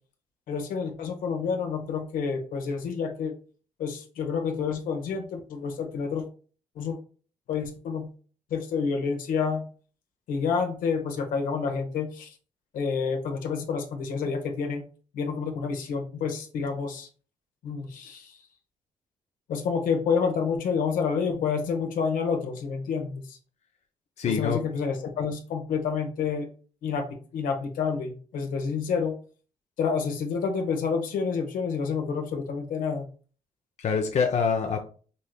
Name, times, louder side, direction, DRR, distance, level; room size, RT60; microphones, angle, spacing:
voice 1, 0.5-3.3 3.8-6.3 6.8-7.0 7.5-8.1 8.5-9.6 10.3-12.3 12.7-14.8 15.1-17.1 17.6-18.4 19.5-23.4 24.2-26.5 26.8-29.1 29.8-33.1, left 5 dB, 75° left, 5 dB, 1.0 m, -29 dB
voice 2, 24.2-24.6 33.8-34.8, left 6 dB, 55° left, 3 dB, 0.7 m, -25 dB
5.4 x 3.1 x 2.3 m, 0.39 s
supercardioid pair, 60°, 14 cm